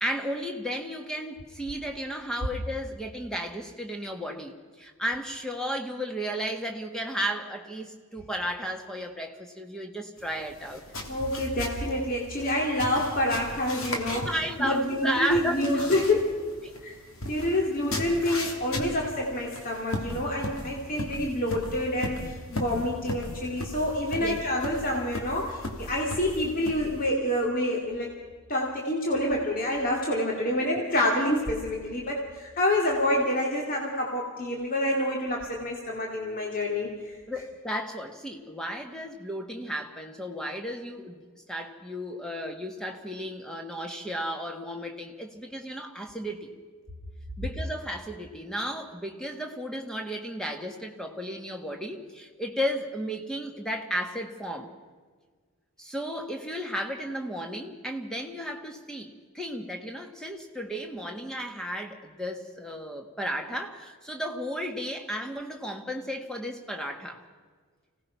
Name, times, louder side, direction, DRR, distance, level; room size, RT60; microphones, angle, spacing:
voice 1, 0.0-10.8 14.2-15.9 24.2-24.4 37.3-46.5 47.4-54.7 55.8-67.2, equal, 5° left, 3 dB, 1.7 m, -34 dB
sound 1, 10.2-27.1, left 1 dB, 65° left, 2.9 m, -37 dB
voice 2, 11.1-16.4 16.8-17.0 17.2-28.1 28.5-37.2, left 1 dB, 40° left, -1 dB, 2.6 m, -27 dB
26.0 x 17.5 x 5.8 m, 1.5 s
head